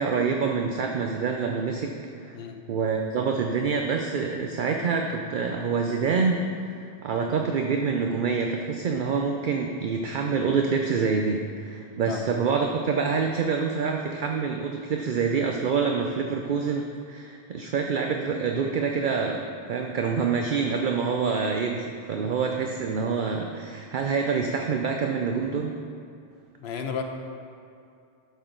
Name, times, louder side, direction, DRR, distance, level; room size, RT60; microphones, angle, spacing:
voice 1, 0.0-1.9 2.2-2.4 2.7-25.8, right 5 dB, 55° right, 2 dB, 0.7 m, -26 dB
voice 2, 26.6-27.0, left 6 dB, 70° left, 4 dB, 1.0 m, -32 dB
11.5 x 6.4 x 3.8 m, 2.5 s
omnidirectional pair, 1.1 m